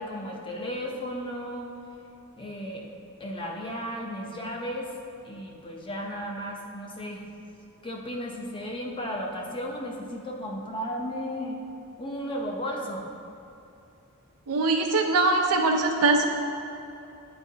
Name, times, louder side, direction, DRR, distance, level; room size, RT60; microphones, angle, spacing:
voice 1, 0.0-1.7 2.4-2.9 3.2-4.9 5.2-7.3 7.8-11.6 12.0-13.0, equal, 25° left, -1 dB, 0.6 m, -34 dB
voice 2, 14.5-16.3, right 3 dB, 85° right, 2 dB, 0.5 m, -22 dB
8.8 x 4.5 x 2.8 m, 2.7 s
head